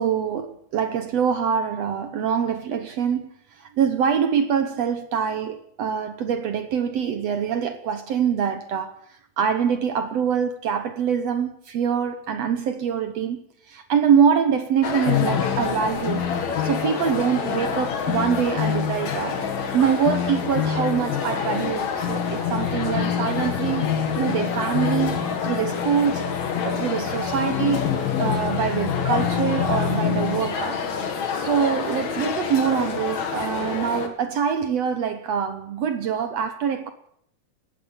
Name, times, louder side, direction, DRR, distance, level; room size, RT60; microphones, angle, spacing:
voice 1, 0.0-3.3 3.8-8.9 9.4-13.4 13.7-16.3 16.6-19.4 19.7-23.9 24.1-25.2 25.4-26.3 26.6-27.9 28.2-30.8 31.3-36.9, right 7 dB, 65° right, 1.6 m, -24 dB
sound 1, 14.8-34.1, left 6 dB, 55° left, 3.3 m, -28 dB
sound 2, 15.1-30.5, left 9 dB, 75° left, 3.5 m, -28 dB
19.5 x 15.5 x 8.8 m
omnidirectional pair, 4.2 m